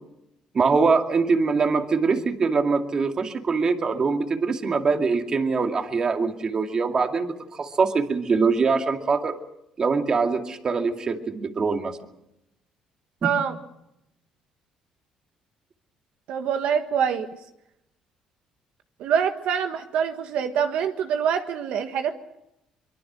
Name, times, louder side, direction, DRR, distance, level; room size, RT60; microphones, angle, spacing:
voice 1, 0.5-9.4 9.8-12.0 13.2-13.3, right 4 dB, 35° right, 5 dB, 2.3 m, -23 dB
voice 2, 13.2-13.6 16.3-17.3 19.0-22.1, right 7 dB, 75° right, 6 dB, 1.5 m, -25 dB
24.5 x 23.0 x 6.2 m, 0.84 s
cardioid pair, 110°, 2 cm